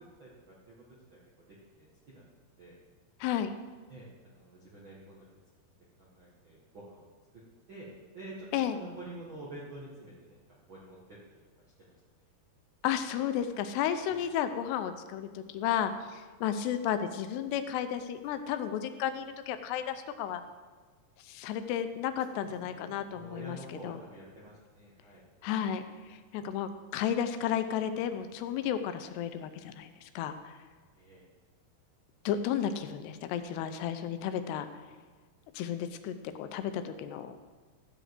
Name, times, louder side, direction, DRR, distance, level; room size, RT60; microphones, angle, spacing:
voice 1, 0.2-2.2 2.6-2.8 3.9-5.2 6.0-7.0 7.7-11.4 11.8-12.3 14.2-14.3 22.3-25.2 30.9-31.2, right 2 dB, 60° right, -5 dB, 1.2 m, -49 dB
voice 2, 3.2-3.5 8.5-8.8 12.8-20.4 21.2-23.6 23.8-24.0 25.4-30.6 32.3-34.7 35.5-37.4, left 9 dB, 85° left, 9 dB, 2.8 m, -33 dB
13.5 x 5.0 x 7.7 m, 1.4 s
omnidirectional pair, 4.7 m